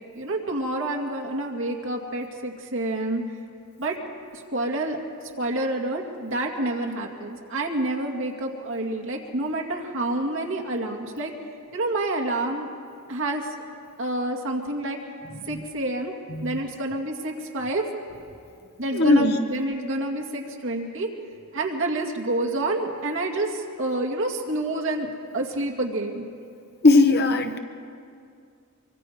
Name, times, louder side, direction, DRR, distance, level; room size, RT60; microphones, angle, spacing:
voice 1, 0.2-3.2 3.8-4.0 4.3-5.0 5.4-11.3 11.7-12.7 13.1-13.5 14.0-15.0 15.5-16.1 16.4-17.8 18.8-21.1 21.5-25.1 25.3-26.2, right 2 dB, 65° right, 1 dB, 2.3 m, -28 dB
voice 2, 18.9-19.4 26.8-27.6, left 2 dB, 50° left, 6 dB, 1.2 m, -19 dB
24.0 x 24.0 x 5.2 m, 2.4 s
head